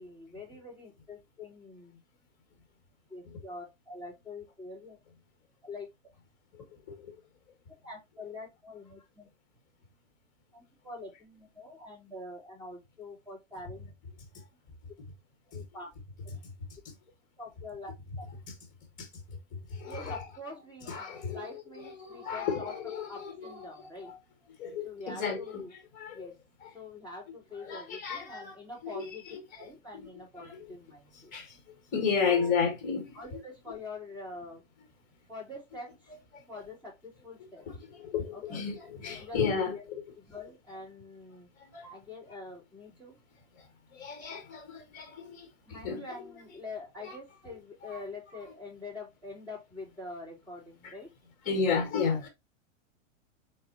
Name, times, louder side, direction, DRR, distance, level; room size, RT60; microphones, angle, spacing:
voice 1, 0.0-2.0 3.1-5.0 5.6-5.9 7.8-9.3 10.5-13.9 15.5-15.9 17.4-17.9 19.8-22.7 23.1-24.1 24.8-25.7 26.1-26.3 26.7-29.3 29.6-31.3 32.2-32.6 33.1-34.6 35.3-36.1 36.5-37.6 38.3-38.6 39.1-39.8 40.2-41.5 41.9-43.2 45.6-51.1, left 2 dB, 5° right, 3.0 m, -45 dB
voice 2, 19.7-20.2 20.9-21.5 21.8-24.2 24.6-25.6 25.9-26.3 26.6-26.7 27.6-28.5 28.8-29.4 30.4-30.7 31.3-31.6 31.9-33.2 36.3-36.4 37.9-39.7 41.7-41.9 43.9-46.0 47.8-48.0 50.8-50.9 51.4-52.3, left 6 dB, 20° left, 1.5 m, -33 dB
4.2 x 4.2 x 2.8 m
supercardioid pair, 170°, 39 cm